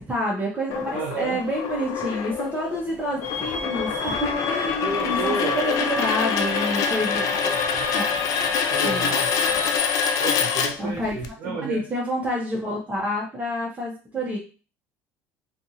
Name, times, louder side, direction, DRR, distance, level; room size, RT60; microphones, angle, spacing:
voice 1, 0.1-7.2 7.9-8.0 8.8-9.1 10.8-11.1 11.4-14.4, equal, 20° right, -4 dB, 0.8 m, -28 dB
sound 1, 0.7-11.3, left 6 dB, 60° left, 0.4 m, -25 dB
voice 2, 0.9-1.4 4.8-6.1 7.2-7.9 8.7-9.3 10.2-11.8, right 4 dB, 55° right, -2 dB, 0.9 m, -32 dB
sound 2, 3.2-9.8, left 4 dB, 40° left, 0.8 m, -33 dB
2.5 x 2.4 x 2.7 m, 0.35 s
supercardioid pair, 105°, 7 cm